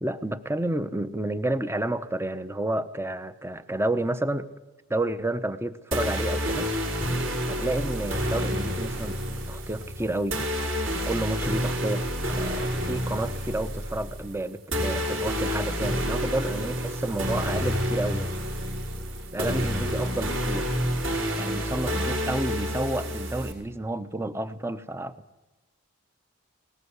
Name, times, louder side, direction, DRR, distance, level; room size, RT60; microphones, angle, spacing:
voice 1, 0.0-4.5 4.9-6.7 7.5-10.4 11.1-18.3 19.3-20.7 21.4-25.2, right 1 dB, 10° right, 12 dB, 0.8 m, -30 dB
sound 1, 5.9-23.5, equal, 60° right, 5.5 m, -29 dB
20.0 x 19.0 x 8.2 m, 1.2 s
head